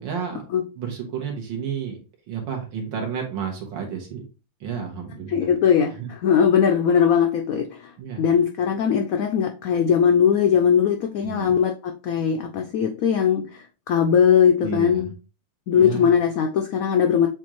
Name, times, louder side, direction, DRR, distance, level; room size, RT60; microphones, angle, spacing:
voice 1, 0.0-0.4 0.8-2.0 2.3-4.2 4.6-5.5 6.0-6.1 8.0-8.3 11.2-11.5 14.6-15.1 15.8-16.1, right 7 dB, 75° right, 1 dB, 1.9 m, -31 dB
voice 2, 5.3-7.9 8.2-15.1 15.7-17.3, left 7 dB, 80° left, 4 dB, 0.7 m, -20 dB
6.9 x 2.5 x 3.0 m, 0.33 s
omnidirectional pair, 2.1 m